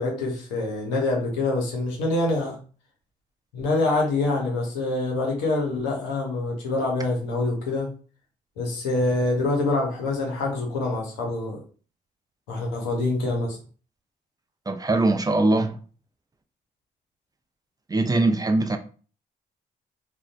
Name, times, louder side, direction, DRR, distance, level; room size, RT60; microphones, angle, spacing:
voice 1, 0.0-2.6 3.5-7.9 8.6-11.6 12.5-13.6, left 2 dB, 90° left, 0.6 m, -25 dB
voice 2, 14.7-15.8 17.9-18.8, right 2 dB, 20° right, 0.4 m, -21 dB
2.5 x 2.0 x 2.4 m
hypercardioid pair, 40°, 21 cm